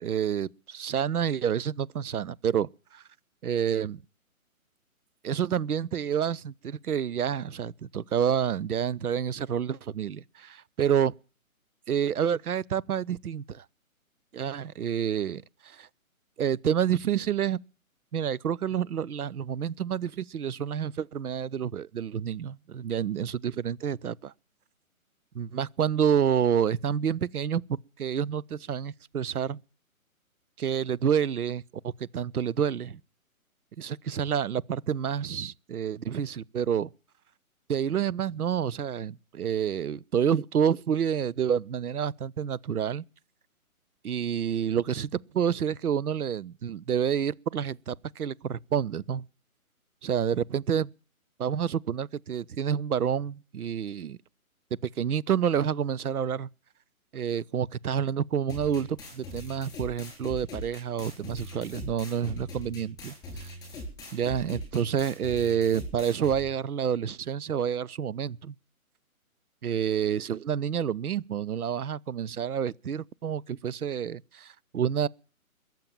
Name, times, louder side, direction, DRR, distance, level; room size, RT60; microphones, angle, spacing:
voice 1, 0.0-3.0 3.4-4.0 5.2-11.1 11.9-13.6 14.3-15.9 16.4-17.6 18.1-24.3 25.3-27.6 28.0-29.6 30.6-33.0 33.8-36.9 37.7-43.0 44.0-49.2 50.0-50.9 51.4-54.2 54.8-56.5 57.1-63.1 64.1-68.5 69.6-75.1, right 8 dB, 85° right, 0.8 m, -28 dB
sound 1, 58.5-66.5, left 1 dB, 10° left, 4.2 m, -41 dB
22.0 x 7.7 x 7.3 m
hypercardioid pair, 160°, 43 cm